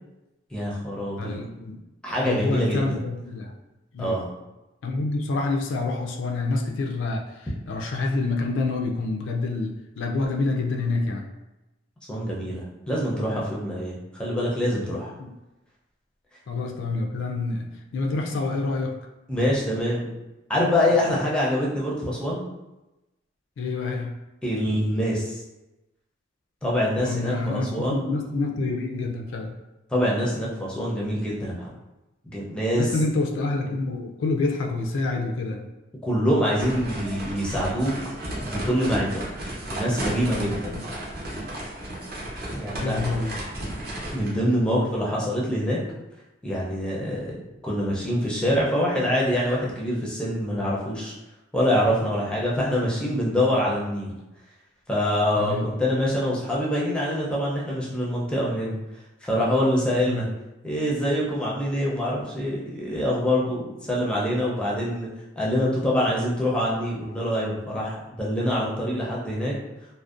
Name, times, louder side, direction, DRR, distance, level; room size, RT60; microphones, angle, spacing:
voice 1, 0.5-1.4 2.0-2.9 4.0-4.3 12.1-15.1 19.3-20.1 20.5-22.4 24.4-25.4 26.6-28.0 29.9-31.7 32.2-32.9 36.0-37.9 38.4-39.3 39.7-40.7 42.5-43.0 44.1-45.8 46.4-51.1 51.5-54.1 54.9-58.7 59.2-60.3 60.6-65.1 65.4-69.5, equal, 5° left, -5 dB, 0.5 m, -25 dB
voice 2, 1.2-1.8 2.2-3.5 3.9-4.2 4.8-11.3 15.2-15.3 16.5-19.0 23.6-24.1 27.0-29.6 32.8-35.7 40.7-40.8 42.7-43.4 55.4-55.7 60.1-60.3, left 3 dB, 75° left, 2 dB, 0.3 m, -27 dB
sound 1, 36.6-44.4, right 1 dB, 50° right, 0.6 m, -33 dB
2.5 x 2.0 x 2.4 m, 1.0 s
head